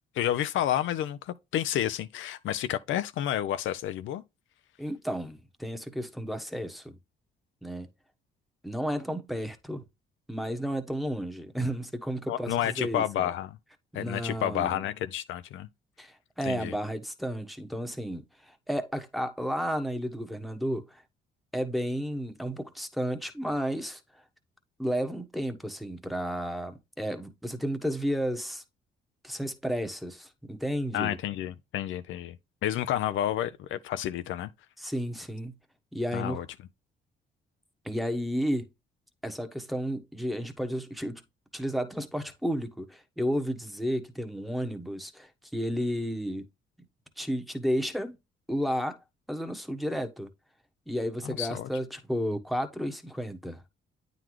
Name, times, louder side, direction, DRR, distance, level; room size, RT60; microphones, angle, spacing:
voice 1, 0.1-4.2 12.3-13.6 13.9-15.7 16.4-16.8 30.9-32.4 32.6-34.5 36.1-36.5 51.2-51.7, left 11 dB, 75° left, 0.5 m, -30 dB
voice 2, 4.8-6.9 7.6-7.9 8.6-9.8 10.3-13.3 14.0-14.8 16.0-21.0 21.5-24.0 24.8-28.6 29.2-31.2 34.8-35.5 35.9-36.4 37.8-38.7 39.2-41.2 41.5-46.5 47.2-48.2 48.5-49.0 49.3-50.3 50.9-53.6, equal, ahead, 1.1 m, -32 dB
9.0 x 3.9 x 3.1 m
cardioid pair, 90°, 20 cm